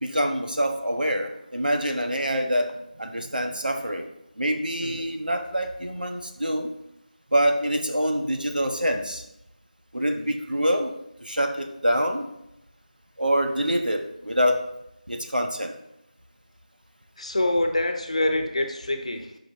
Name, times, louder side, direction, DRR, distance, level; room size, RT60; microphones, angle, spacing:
voice 1, 0.0-6.7 7.3-9.2 9.9-10.9 11.2-12.3 13.2-14.6 15.1-15.8, equal, 80° right, 5 dB, 1.3 m, -25 dB
voice 2, 10.0-10.3 17.2-19.4, left 1 dB, 45° left, 6 dB, 1.0 m, -26 dB
12.0 x 5.3 x 3.2 m, 0.83 s
figure-of-eight pair, 170°, 5 cm